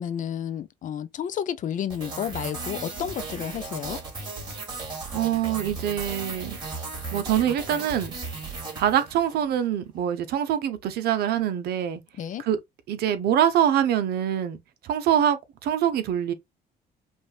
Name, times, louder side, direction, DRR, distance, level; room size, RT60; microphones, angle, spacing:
voice 1, 0.0-4.0 12.2-12.4, left 9 dB, 50° left, 0.6 m, -31 dB
sound 1, 1.9-9.5, right 3 dB, 25° right, 2.7 m, -36 dB
voice 2, 5.1-6.6 7.1-8.1 8.7-12.0 12.4-12.6 12.9-16.3, right 10 dB, 70° right, 0.8 m, -24 dB
5.3 x 2.4 x 2.4 m
cardioid pair, 110°, 17 cm